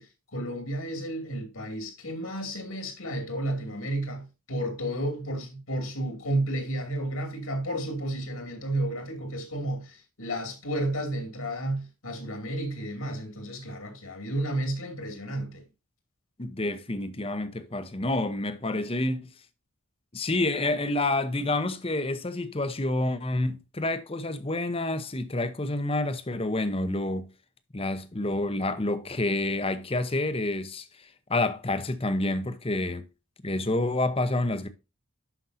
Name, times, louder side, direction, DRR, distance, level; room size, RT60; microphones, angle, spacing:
voice 1, 0.0-15.6, right 1 dB, 75° left, 2.7 m, -32 dB
voice 2, 16.4-19.3 20.1-27.3 27.7-33.1 33.4-34.7, left 2 dB, 25° left, 0.8 m, -28 dB
11.5 x 5.4 x 2.7 m
head